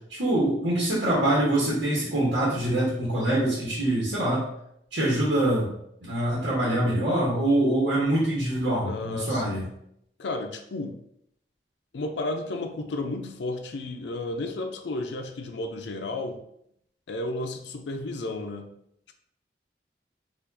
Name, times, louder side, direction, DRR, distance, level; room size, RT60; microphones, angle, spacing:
voice 1, 0.1-4.5 4.9-5.7 6.0-9.6, right 1 dB, 90° right, -7 dB, 1.1 m, -24 dB
voice 2, 8.8-9.6 10.2-10.9 11.9-16.4 17.1-18.7, left 2 dB, 80° left, 5 dB, 0.4 m, -32 dB
4.5 x 2.5 x 2.6 m, 0.73 s
head